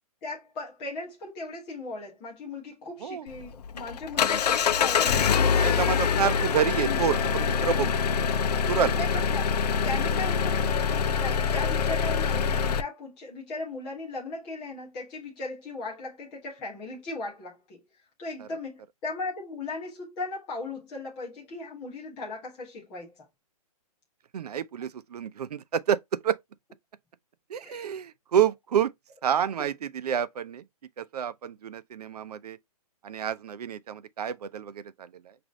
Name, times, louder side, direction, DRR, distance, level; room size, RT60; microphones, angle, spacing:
voice 1, 0.2-5.8 6.9-7.0 7.8-7.9 9.0-17.8 18.2-23.1 27.6-27.9, left 3 dB, 5° left, 0.3 m, -37 dB
Engine, 3.3-12.8, left 6 dB, 90° left, 0.6 m, -25 dB
voice 2, 5.5-8.0 8.7-9.0 18.4-18.5 24.3-26.4 27.5-28.9 29.2-30.6 31.0-32.6 33.0-35.4, right 8 dB, 80° right, 0.6 m, -29 dB
6.2 x 2.6 x 3.1 m
hypercardioid pair, 175°, 20 cm